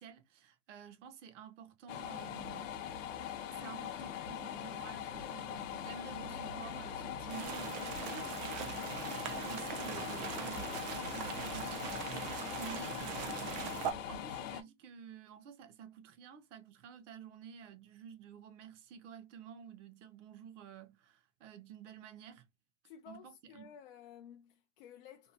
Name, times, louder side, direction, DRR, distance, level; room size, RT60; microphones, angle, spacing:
voice 1, 0.0-2.7 3.5-22.5 23.1-23.7, right 7 dB, 70° right, 0.7 m, -51 dB
sound 1, 1.9-14.6, left 8 dB, 85° left, 0.7 m, -41 dB
sound 2, 7.3-13.9, right 8 dB, 35° right, 0.4 m, -41 dB
voice 2, 22.8-25.3, left 8 dB, 50° left, 0.4 m, -54 dB
2.6 x 2.1 x 2.6 m
supercardioid pair, 150°, 37 cm